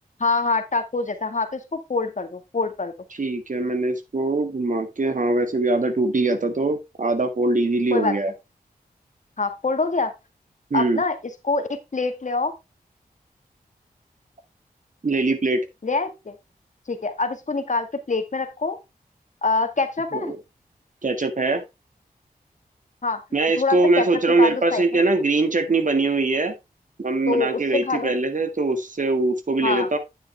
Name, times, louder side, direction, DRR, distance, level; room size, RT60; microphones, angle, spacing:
voice 1, 0.2-2.9 7.9-8.1 9.4-10.1 10.7-11.1 11.4-12.5 15.8-16.4 16.9-18.8 19.4-20.3 23.0-23.2 23.6-24.1 24.4-24.8 27.3-28.1 29.6-29.9, left 3 dB, 55° left, 8 dB, 1.6 m, -25 dB
voice 2, 3.1-8.3 10.7-11.0 15.0-15.6 20.1-20.4 21.0-21.6 23.3-26.5 27.0-30.0, right 2 dB, 55° right, 8 dB, 1.7 m, -22 dB
9.4 x 6.9 x 3.3 m, 0.23 s
wide cardioid pair, 60°, 16 cm